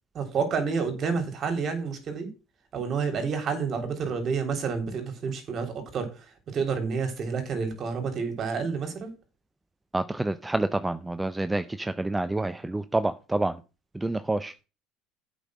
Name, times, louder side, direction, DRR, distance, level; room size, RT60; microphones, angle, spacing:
voice 1, 0.1-2.3 2.7-9.1, right 5 dB, 45° right, 6 dB, 3.3 m, -29 dB
voice 2, 9.9-13.5 13.9-14.5, right 2 dB, 10° right, 11 dB, 0.6 m, -28 dB
8.4 x 5.5 x 6.2 m, 0.31 s
supercardioid pair, 100°, 0 cm